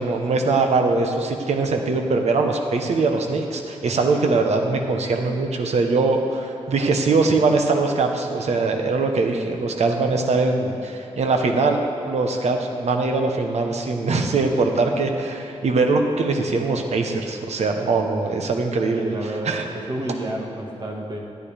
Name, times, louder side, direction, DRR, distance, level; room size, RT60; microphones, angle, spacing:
voice 1, 0.0-19.1 19.4-19.6, right 3 dB, 85° right, 3 dB, 0.9 m, -22 dB
voice 2, 18.9-21.2, right 1 dB, 45° right, -1 dB, 1.6 m, -30 dB
13.5 x 9.4 x 3.4 m, 3.0 s
wide cardioid pair, 95°, 11 cm